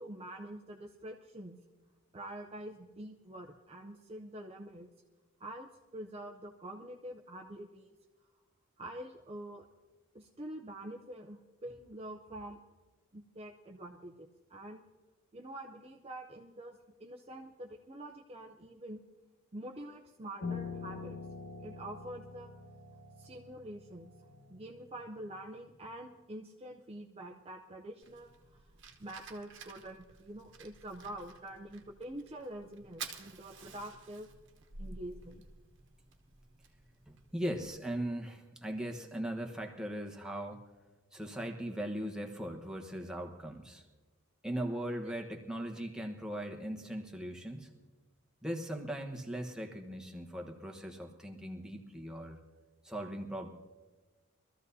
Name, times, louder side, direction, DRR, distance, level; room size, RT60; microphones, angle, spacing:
voice 1, 0.0-1.6 2.1-4.9 5.4-8.0 8.8-9.6 10.1-12.6 13.1-14.8 15.3-19.0 19.5-21.2 21.6-22.5 23.2-24.1 24.5-28.6 29.0-34.3 34.8-35.4, right 1 dB, 30° right, 2 dB, 0.6 m, -46 dB
Piano, 20.4-25.7, left 4 dB, 90° left, 1.7 m, -45 dB
Fire, 28.0-37.7, right 5 dB, 55° right, 1.1 m, -51 dB
voice 2, 37.1-40.6 41.1-43.8 44.4-47.7 48.4-52.4 52.8-53.5, right 1 dB, 5° right, 1 dB, 1.1 m, -39 dB
23.5 x 14.0 x 2.7 m, 1.2 s
head